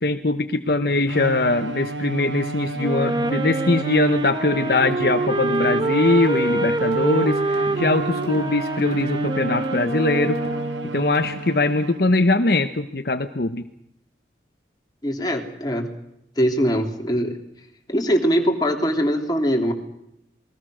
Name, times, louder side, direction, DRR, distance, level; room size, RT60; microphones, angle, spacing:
voice 1, 0.0-10.4 10.9-13.7, left 2 dB, 55° left, 8 dB, 1.0 m, -21 dB
Bowed string instrument, 1.1-12.3, right 2 dB, 90° right, 1.4 m, -32 dB
Wind instrument woodwind instrument, 2.8-11.1, right 2 dB, 25° right, 1.2 m, -26 dB
sound 1, 4.9-5.2 5.5-5.9 6.2-6.5 6.9-7.3 7.5-7.9 8.2-8.6 8.9-9.2 9.6-10.0 10.4-10.7 11.1-11.5, right 1 dB, 65° right, 3.6 m, -43 dB
voice 2, 15.0-15.9 16.4-17.4 17.9-19.7, equal, 20° left, 3 dB, 3.2 m, -22 dB
28.0 x 21.0 x 6.4 m, 0.79 s
head